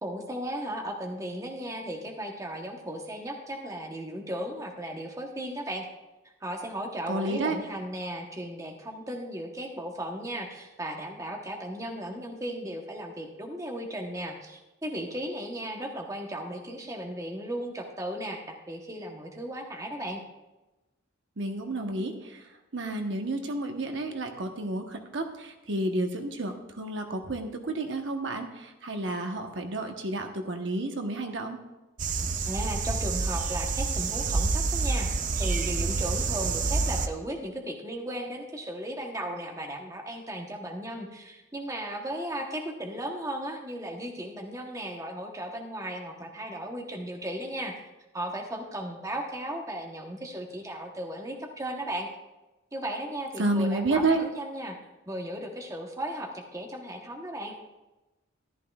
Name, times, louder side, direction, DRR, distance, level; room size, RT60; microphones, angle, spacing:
voice 1, 0.0-5.9 6.4-20.2 32.5-35.1 35.4-47.7 48.1-52.1 52.7-54.7 55.1-57.5, right 1 dB, 15° right, 1 dB, 1.0 m, -36 dB
voice 2, 7.1-7.6 21.4-22.4 22.7-31.6 53.4-54.2, right 2 dB, 65° right, 4 dB, 1.0 m, -30 dB
sound 1, 32.0-37.1, right 4 dB, 40° right, 0.5 m, -28 dB
14.0 x 11.5 x 2.4 m, 1.0 s
head